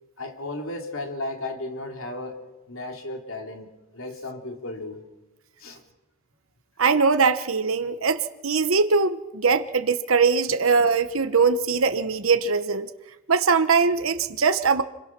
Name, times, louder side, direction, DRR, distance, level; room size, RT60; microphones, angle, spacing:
voice 1, 0.2-3.7 3.9-5.0 5.6-5.8, left 2 dB, 75° left, 3.0 m, -34 dB
voice 2, 6.8-12.9 13.3-14.8, right 5 dB, 90° right, 1.0 m, -21 dB
27.0 x 21.5 x 6.0 m
head